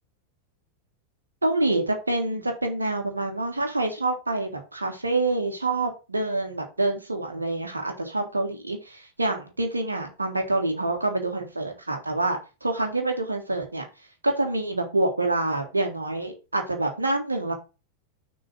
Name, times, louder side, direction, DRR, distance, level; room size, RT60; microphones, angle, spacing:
voice 1, 1.4-13.9 14.2-17.5, right 2 dB, 80° right, 3 dB, 1.4 m, -27 dB
6.2 x 3.8 x 6.0 m, 0.30 s
figure-of-eight pair, 90°, 0 cm